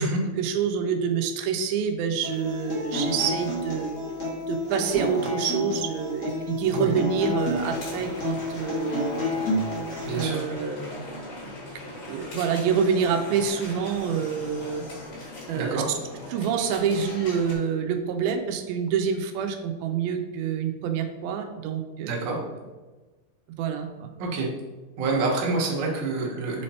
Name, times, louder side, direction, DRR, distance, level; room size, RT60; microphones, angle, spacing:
voice 1, 0.4-3.9 4.5-9.2 10.1-11.6 12.1-14.8 15.5-15.8 16.3-22.3 23.6-24.1, right 7 dB, 85° right, 5 dB, 2.4 m, -27 dB
Acoustic guitar, 2.2-10.2, left 2 dB, 50° left, 0.9 m, -30 dB
sound 1, 7.5-17.6, left 2 dB, 90° left, 3.9 m, -39 dB
voice 2, 10.0-10.4 15.5-15.9 22.0-22.4 24.2-24.5 25.0-26.6, right 3 dB, 60° right, -2 dB, 1.9 m, -27 dB
7.1 x 3.2 x 4.2 m, 1.2 s
omnidirectional pair, 4.1 m